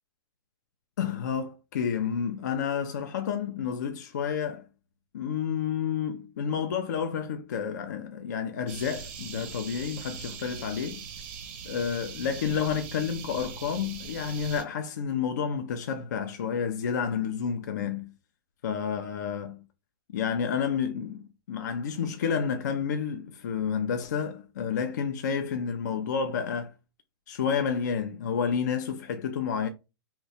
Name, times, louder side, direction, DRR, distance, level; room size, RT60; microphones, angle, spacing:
voice 1, 1.0-4.7 5.1-11.0 11.6-18.1 18.6-19.6 20.1-26.7 27.3-29.7, left 7 dB, 45° left, 0.4 m, -30 dB
sound 1, 8.7-14.6, right 7 dB, 30° right, 0.5 m, -41 dB
2.8 x 2.1 x 4.1 m
hypercardioid pair, 175°, 13 cm